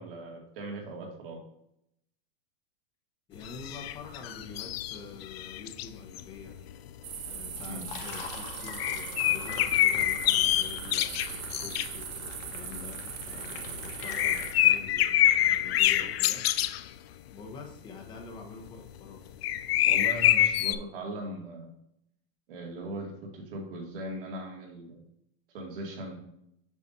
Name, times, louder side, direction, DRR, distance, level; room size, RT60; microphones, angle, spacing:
voice 1, 0.0-1.4 7.7-7.9 19.9-21.7 22.5-25.0 25.5-26.2, right 1 dB, 65° right, 0 dB, 2.2 m, -39 dB
voice 2, 3.3-6.5 7.3-16.4 17.3-19.3, left 4 dB, 15° left, 1 dB, 1.0 m, -46 dB
sound 1, 3.4-5.9 6.2-7.0 8.0-8.4 8.7-12.1 12.4-16.9 18.2-18.3 18.7-19.0 19.3-20.8, left 13 dB, 85° left, 0.5 m, -26 dB
sound 2, 7.0-14.5, right 7 dB, 20° right, 0.3 m, -40 dB
Liquid, 7.5-15.2, left 6 dB, 65° left, 1.3 m, -44 dB
8.3 x 5.9 x 2.7 m, 0.77 s
supercardioid pair, 165°, 30 cm